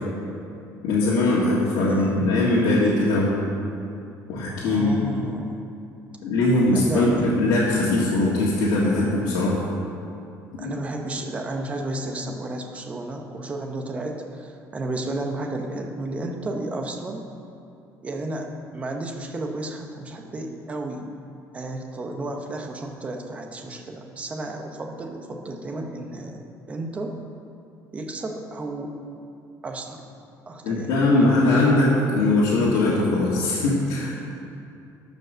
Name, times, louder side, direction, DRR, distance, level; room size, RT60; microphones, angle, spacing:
voice 1, 0.8-3.4 4.3-4.9 6.2-9.6 10.6-10.7 30.6-34.2, left 2 dB, 85° left, -7 dB, 1.8 m, -21 dB
voice 2, 4.6-5.5 6.8-7.3 10.6-17.3 18.0-21.1 21.5-26.4 26.7-27.2 27.9-29.0 29.6-30.0 30.5-30.9, right 2 dB, 20° right, 3 dB, 0.9 m, -32 dB
13.0 x 5.3 x 6.2 m, 2.7 s
cardioid pair, 170°, 7 cm